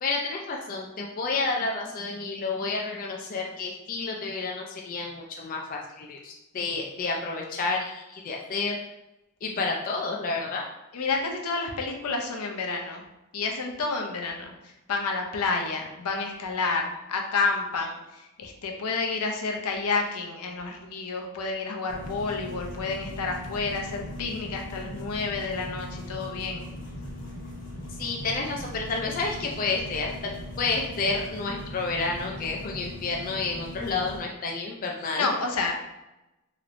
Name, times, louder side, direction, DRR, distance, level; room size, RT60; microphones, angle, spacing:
voice 1, 0.0-8.8 9.4-10.7 28.0-30.3 30.6-35.3, left 3 dB, 40° left, 0 dB, 0.3 m, -30 dB
voice 2, 10.9-13.0 13.3-26.6 35.1-35.8, left 4 dB, 85° left, 2 dB, 0.6 m, -30 dB
sound 1, 21.9-34.2, left 1 dB, 55° left, 1.1 m, -39 dB
3.0 x 3.0 x 2.5 m, 0.97 s
head